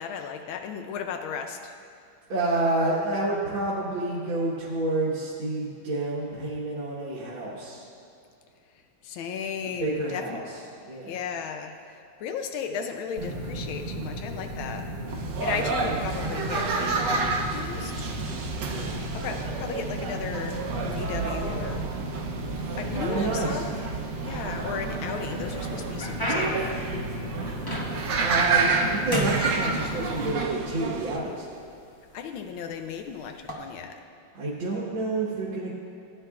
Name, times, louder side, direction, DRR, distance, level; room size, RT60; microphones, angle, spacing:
voice 1, 0.0-1.7 9.0-10.4 11.1-14.9 15.4-17.9 19.1-21.9 22.8-23.7 24.2-26.7 32.1-33.9, left 6 dB, 90° left, 5 dB, 1.5 m, -35 dB
voice 2, 2.3-7.8 9.8-10.4 10.9-11.2 18.7-19.0 23.1-23.6 28.2-31.5 34.3-35.7, right 2 dB, 80° right, -7 dB, 2.3 m, -29 dB
sound 1, 13.2-30.3, right 1 dB, 40° right, 1.0 m, -34 dB
sound 2, 15.1-31.2, right 4 dB, 65° right, 1.4 m, -30 dB
sound 3, 24.2-25.0 25.5-28.2 28.6-28.9 29.1-30.3 31.2-31.3 32.0-32.2 33.3-33.5, right 1 dB, 20° left, 0.7 m, -31 dB
17.5 x 9.8 x 2.4 m, 2.5 s
omnidirectional pair, 2.2 m